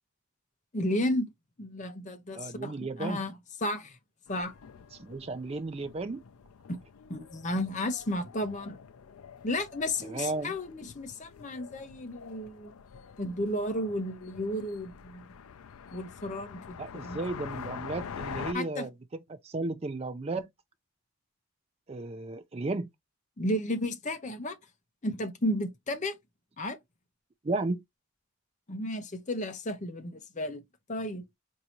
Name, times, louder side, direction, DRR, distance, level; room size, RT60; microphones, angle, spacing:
voice 1, 0.7-1.3 1.6-4.0 4.3-4.5 6.7-6.8 7.1-8.8 9.4-12.7 13.2-15.2 15.9-17.2 18.5-18.9 23.4-24.6 25.0-26.2 26.6-26.8 28.7-30.6 30.9-31.2, left 1 dB, 35° left, 0.7 m, -33 dB
voice 2, 2.3-3.2 5.0-6.2 10.0-10.5 16.8-20.5 21.9-22.9 27.4-27.8, right 2 dB, 25° right, 0.4 m, -34 dB
sound 1, 4.3-18.5, left 6 dB, 75° left, 0.4 m, -46 dB
4.6 x 2.7 x 2.9 m
head